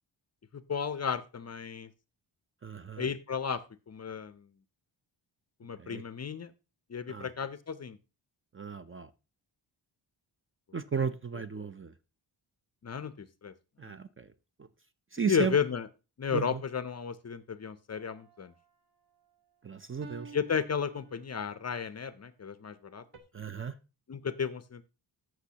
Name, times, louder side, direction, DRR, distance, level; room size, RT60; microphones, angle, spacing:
voice 1, 0.5-1.9 3.0-3.6 3.9-4.4 5.6-6.5 6.9-8.0 12.8-13.5 13.8-14.0 15.3-15.9 16.2-18.5 20.3-23.0 24.1-24.8, left 6 dB, 35° left, 0.5 m, -33 dB
voice 2, 2.6-3.1 5.8-6.0 7.1-7.3 8.5-9.1 10.7-11.9 13.8-14.3 14.6-14.7 15.1-15.6 16.3-16.6 19.6-20.4 23.3-23.8, right 6 dB, 30° right, 0.4 m, -35 dB
sound 1, 17.9-18.6 20.0-21.6 23.1-23.2, right 5 dB, 55° right, 1.3 m, -51 dB
14.5 x 6.2 x 2.8 m
wide cardioid pair, 175°, 46 cm